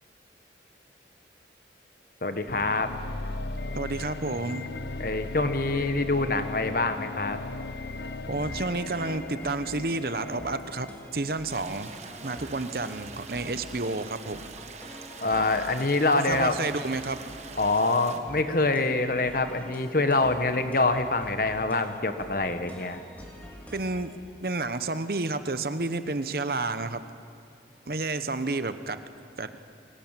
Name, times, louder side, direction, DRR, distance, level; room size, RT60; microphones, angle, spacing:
voice 1, 2.2-2.9 5.0-7.4 15.2-16.5 17.6-23.0, left 3 dB, 50° left, 8 dB, 1.3 m, -25 dB
sound 1, 2.5-11.5, left 2 dB, 70° left, 0.9 m, -37 dB
voice 2, 3.7-4.6 8.3-11.9 12.2-14.5 16.3-17.2 23.7-24.1 24.4-27.0 27.9-29.0 29.4-29.5, right 3 dB, 55° right, 11 dB, 0.9 m, -30 dB
sound 2, 8.4-24.2, equal, 10° left, 3.2 m, -46 dB
sound 3, 11.5-18.2, right 5 dB, 40° right, 1.3 m, -45 dB
23.5 x 17.5 x 9.0 m, 2.5 s
head